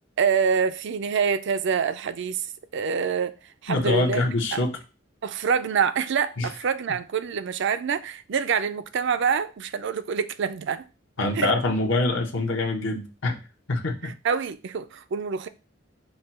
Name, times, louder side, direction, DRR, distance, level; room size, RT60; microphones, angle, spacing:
voice 1, 0.2-2.4 2.7-3.3 3.6-4.6 5.2-10.9 11.4-11.5 14.0-15.5, right 6 dB, 65° right, 0.4 m, -26 dB
voice 2, 3.7-4.8 6.4-6.5 11.2-13.4 13.7-14.1, left 2 dB, 70° left, 1.0 m, -25 dB
5.4 x 2.3 x 4.2 m
head